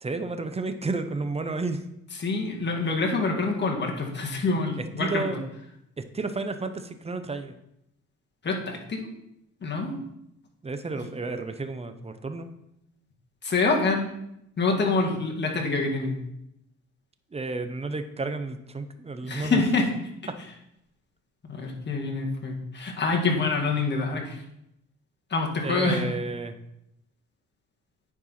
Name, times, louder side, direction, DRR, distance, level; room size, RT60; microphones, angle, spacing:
voice 1, 0.0-1.8 4.8-5.5 6.1-7.5 10.6-12.5 17.3-19.6 25.6-26.5, right 3 dB, 20° right, 9 dB, 0.7 m, -31 dB
voice 2, 2.2-5.4 8.4-9.0 9.6-10.0 11.0-11.1 13.4-14.1 14.6-16.2 19.3-19.9 21.5-24.4 25.3-26.0, left 3 dB, 35° left, 0 dB, 1.8 m, -26 dB
10.0 x 4.6 x 4.2 m, 0.81 s
cardioid pair, 90°, 30 cm